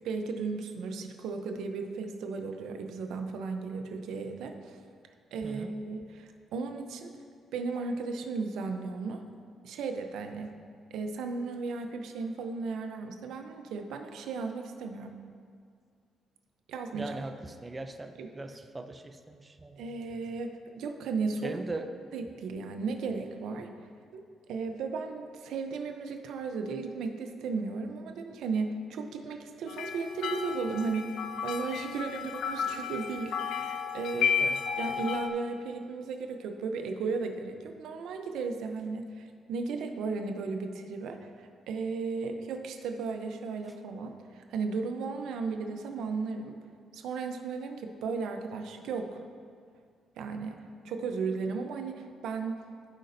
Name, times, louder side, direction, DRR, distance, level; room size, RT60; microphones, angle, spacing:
voice 1, 0.0-4.8 5.3-7.1 7.5-9.2 9.6-10.5 10.9-15.2 16.7-17.2 18.2-18.3 19.8-21.6 22.1-23.7 24.1-24.2 24.5-34.5 34.8-46.6 46.9-49.2 50.2-52.6, right 4 dB, 80° right, 5 dB, 0.7 m, -35 dB
voice 2, 5.4-5.7 16.9-19.8 21.4-21.9 34.4-34.6, right 2 dB, 25° right, 6 dB, 0.5 m, -39 dB
sound 1, 29.7-35.3, left 6 dB, 85° left, 0.6 m, -33 dB
15.5 x 5.2 x 2.7 m, 2.2 s
cardioid pair, 90°, 0 cm